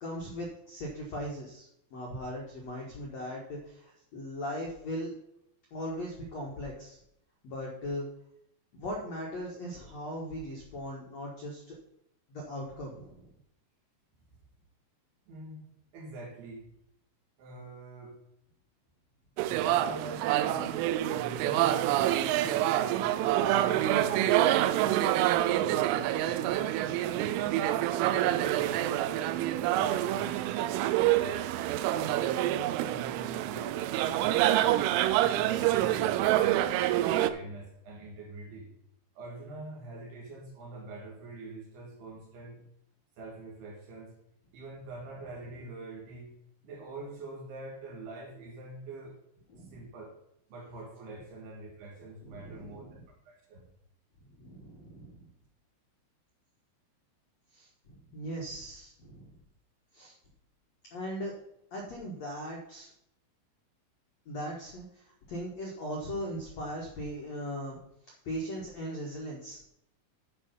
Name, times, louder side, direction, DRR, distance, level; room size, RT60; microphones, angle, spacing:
voice 1, 0.0-5.1 5.7-7.0 7.4-8.1 8.7-11.7 12.3-13.3 49.5-49.8 52.2-53.0 54.4-55.3 57.5-59.4 59.9-60.1 60.9-61.3 61.7-62.9 64.2-69.6, equal, 75° left, -1 dB, 1.5 m, -39 dB
voice 2, 15.3-16.7 17.4-18.2 19.5-20.8 21.1-25.0 25.4-27.5 27.9-31.5 31.9-34.8 35.2-36.1 36.4-38.7 39.2-42.6 43.2-44.2 44.5-46.3 46.6-49.2 49.7-50.1 50.5-53.0 53.3-53.7, right 2 dB, 60° right, 1 dB, 3.4 m, -44 dB
sound 1, 19.4-37.3, right 13 dB, 85° right, 3.1 m, -27 dB
11.5 x 5.6 x 5.3 m, 0.77 s
omnidirectional pair, 5.6 m